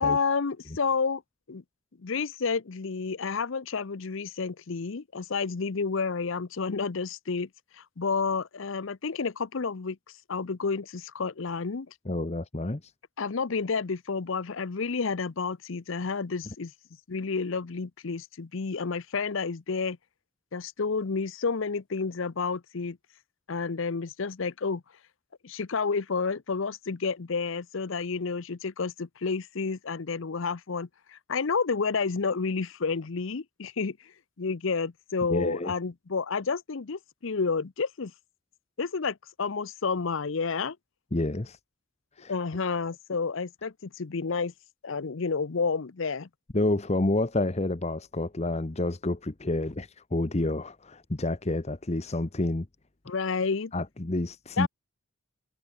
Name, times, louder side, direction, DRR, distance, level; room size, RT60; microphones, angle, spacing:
voice 1, 0.0-1.2 1.5-1.6 2.0-7.5 7.8-10.0 10.3-11.9 13.2-16.7 17.1-20.0 20.5-23.0 23.5-24.8 25.4-34.0 34.4-38.1 38.8-40.8 42.3-44.5 44.8-46.3 53.1-53.7 54.6-54.7, left 4 dB, 60° left, 0.6 m, -30 dB
voice 2, 12.0-12.9 35.3-35.7 41.1-41.6 42.2-42.3 46.5-52.7 53.7-54.7, left 2 dB, 30° left, 1.0 m, -29 dB
head